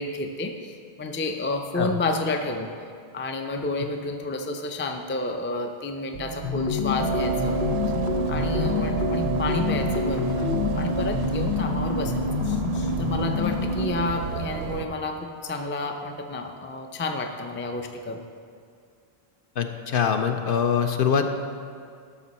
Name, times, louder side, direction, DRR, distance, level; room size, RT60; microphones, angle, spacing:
voice 1, 0.0-2.7 3.1-7.6 8.3-18.3, left 2 dB, 20° left, 5 dB, 0.3 m, -30 dB
sound 1, 6.1-13.3, right 6 dB, 55° right, 0.4 m, -35 dB
sound 2, 6.4-14.1, left 3 dB, 85° left, 1.1 m, -27 dB
sound 3, 7.0-14.9, right 7 dB, 80° right, 0.8 m, -32 dB
voice 2, 19.6-21.3, left 7 dB, 65° left, 6 dB, 0.7 m, -23 dB
12.5 x 6.0 x 4.2 m, 2.2 s
omnidirectional pair, 1.1 m